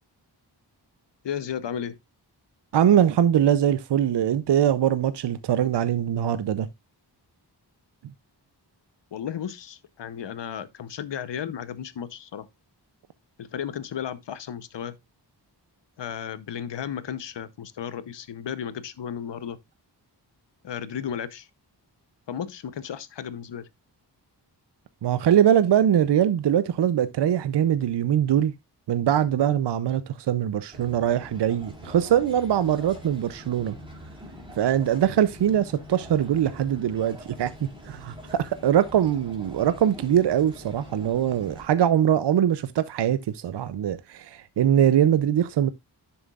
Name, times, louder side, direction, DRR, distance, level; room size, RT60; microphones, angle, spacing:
voice 1, 1.2-1.9 9.1-12.5 13.4-15.0 16.0-19.6 20.6-21.5 22.3-23.7, left 8 dB, 85° left, 0.8 m, -34 dB
voice 2, 2.7-6.7 25.0-28.5 28.9-33.8 34.6-45.7, right 10 dB, 75° right, 0.6 m, -22 dB
sound 1, 30.7-41.7, equal, 10° right, 2.4 m, -44 dB
10.5 x 6.9 x 2.4 m
wide cardioid pair, 95°, 42 cm